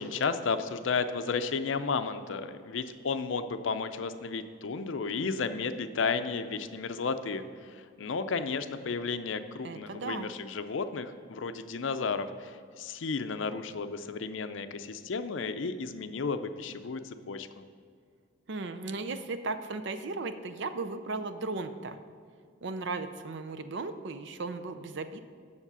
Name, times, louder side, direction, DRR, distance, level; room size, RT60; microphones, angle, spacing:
voice 1, 0.0-17.6, left 4 dB, 70° left, 10 dB, 0.5 m, -33 dB
voice 2, 9.6-10.3 18.5-22.0 22.6-25.2, right 3 dB, 60° right, 10 dB, 0.5 m, -36 dB
7.3 x 6.6 x 6.8 m, 2.2 s
head